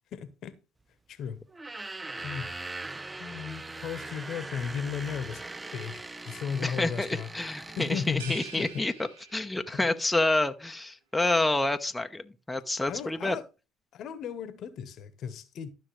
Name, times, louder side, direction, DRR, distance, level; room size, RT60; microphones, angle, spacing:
voice 1, 0.1-0.5 1.1-1.4 2.2-2.5 3.2-5.4 5.7-7.3 7.8-8.7 12.9-13.4 13.9-15.7, left 7 dB, 60° left, 1.1 m, -35 dB
sound 1, 1.5-8.7, right 2 dB, 20° right, 0.6 m, -41 dB
voice 2, 6.6-13.4, left 2 dB, 10° left, 0.8 m, -28 dB
sound 2, 8.2-9.9, right 6 dB, 85° right, 1.4 m, -45 dB
12.5 x 6.1 x 3.2 m
hypercardioid pair, 60°, 0 cm